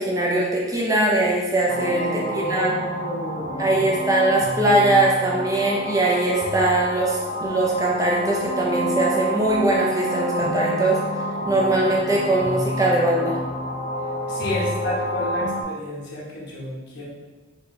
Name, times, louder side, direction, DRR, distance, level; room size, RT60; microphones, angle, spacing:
voice 1, 0.0-2.8 3.6-11.0 11.5-13.4, right 2 dB, 15° right, -3 dB, 0.6 m, -21 dB
sound 1, 1.7-15.6, equal, 35° left, 0.4 m, -29 dB
voice 2, 1.8-3.9 14.3-17.0, left 1 dB, 60° left, -5 dB, 1.1 m, -30 dB
4.2 x 2.9 x 3.2 m, 1.3 s
head